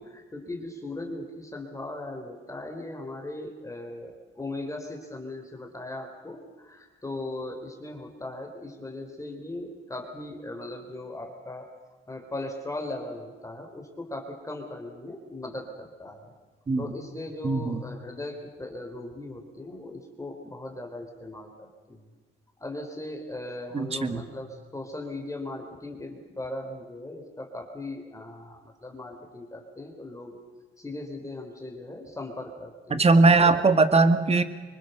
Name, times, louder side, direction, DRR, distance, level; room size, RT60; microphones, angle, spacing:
voice 1, 0.0-11.7 12.1-16.3 16.8-22.0 22.6-30.4 30.8-33.6, left 2 dB, 15° left, 3 dB, 4.0 m, -38 dB
voice 2, 17.4-17.8 23.7-24.2 32.9-34.4, right 3 dB, 30° right, 10 dB, 2.0 m, -20 dB
25.0 x 22.5 x 6.8 m, 1.3 s
cardioid pair, 90°, 20 cm